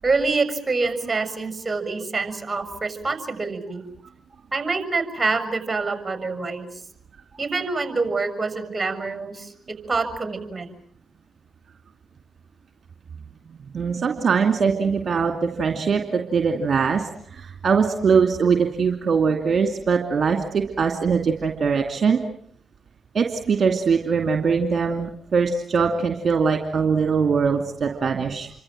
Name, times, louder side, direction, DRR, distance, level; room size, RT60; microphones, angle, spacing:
voice 1, 0.0-3.8 4.5-6.7 7.4-9.5 9.9-10.7, right 3 dB, 30° right, 9 dB, 6.6 m, -26 dB
voice 2, 13.7-22.2 23.1-28.5, right 5 dB, 50° right, 5 dB, 2.6 m, -22 dB
28.5 x 25.0 x 7.7 m, 0.64 s
hypercardioid pair, 40°, 0 cm